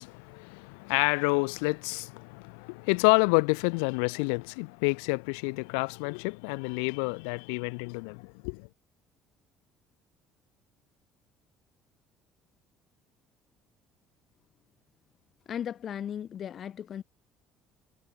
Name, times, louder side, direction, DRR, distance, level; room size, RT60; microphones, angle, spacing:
voice 1, 0.0-8.7, left 38 dB, 80° left, 3.2 m, -28 dB
voice 2, 15.5-17.0, left 9 dB, 50° left, 6.0 m, -36 dB
hypercardioid pair, 70°, 0 cm